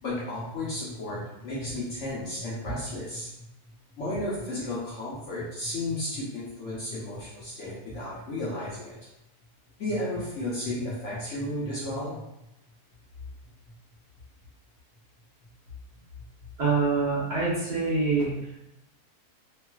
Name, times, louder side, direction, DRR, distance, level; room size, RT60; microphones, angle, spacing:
voice 1, 0.0-3.5 4.0-9.0 9.8-12.2, left 1 dB, 60° left, -7 dB, 0.9 m, -33 dB
voice 2, 16.6-18.3, right 4 dB, 50° right, -8 dB, 1.0 m, -25 dB
3.1 x 2.3 x 2.2 m, 0.90 s
omnidirectional pair, 1.7 m